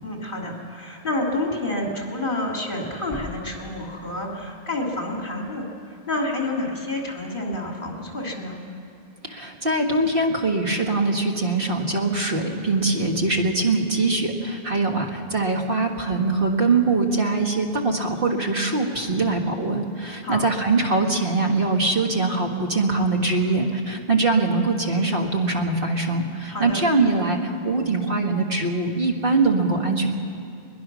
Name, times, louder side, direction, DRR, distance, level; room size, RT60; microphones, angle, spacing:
voice 1, 0.0-8.6 20.2-20.5 26.5-26.8, left 2 dB, 55° left, -1 dB, 3.2 m, -29 dB
sound 1, 3.1-5.0 5.2-5.3, left 1 dB, 15° right, 1.8 m, -42 dB
voice 2, 9.2-30.1, right 3 dB, 60° right, 2 dB, 1.8 m, -22 dB
21.5 x 20.5 x 6.2 m, 2.6 s
omnidirectional pair, 1.0 m